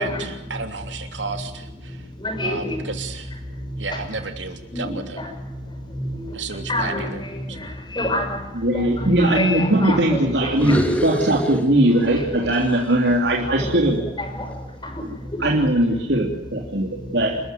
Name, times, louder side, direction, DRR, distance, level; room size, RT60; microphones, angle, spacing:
voice 1, 0.0-2.1 2.4-3.3 3.8-5.2 6.3-7.2 7.5-7.6, right 4 dB, 85° right, 6 dB, 3.0 m, -32 dB
voice 2, 1.9-2.9 3.4-4.0 4.7-10.8 12.1-12.5 13.6-13.9 14.2-15.7 16.7-17.4, left 1 dB, 25° left, 4 dB, 5.8 m, -29 dB
voice 3, 8.6-14.0 15.4-17.3, right 1 dB, 65° right, -1 dB, 3.2 m, -20 dB
sound 1, 10.5-12.2 12.5-14.8, equal, 10° left, 2.8 m, -28 dB
29.0 x 13.5 x 9.4 m, 0.96 s
head